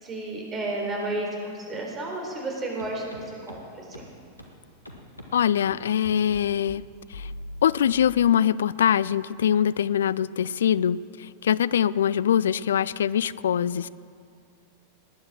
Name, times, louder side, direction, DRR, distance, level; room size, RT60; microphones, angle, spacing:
voice 1, 0.0-3.6 3.9-4.1, right 2 dB, 25° right, 0 dB, 4.0 m, -32 dB
sound 1, 2.8-2.9 3.1-3.2 3.5-3.6 3.9-4.0 4.4-4.5 4.9-5.3 5.7-5.8 6.0-6.4 6.7-6.8 7.1-7.6, left 1 dB, 85° left, 1.7 m, -39 dB
voice 2, 5.3-6.8 7.1-7.3 7.6-13.9, left 9 dB, 65° left, 19 dB, 0.3 m, -23 dB
19.0 x 10.0 x 6.0 m, 2.4 s
figure-of-eight pair, 90°, 0 cm